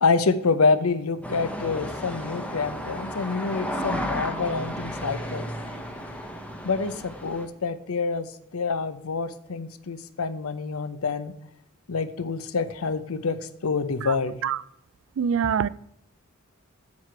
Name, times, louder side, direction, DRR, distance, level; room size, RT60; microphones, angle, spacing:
voice 1, 0.0-5.5 6.6-11.4 11.9-14.4 15.4-15.5, left 4 dB, 85° left, 0.7 m, -27 dB
sound 1, 1.2-7.5, equal, 5° left, 0.8 m, -33 dB
voice 2, 15.2-15.7, right 7 dB, 65° right, 0.3 m, -24 dB
7.5 x 7.4 x 4.5 m
head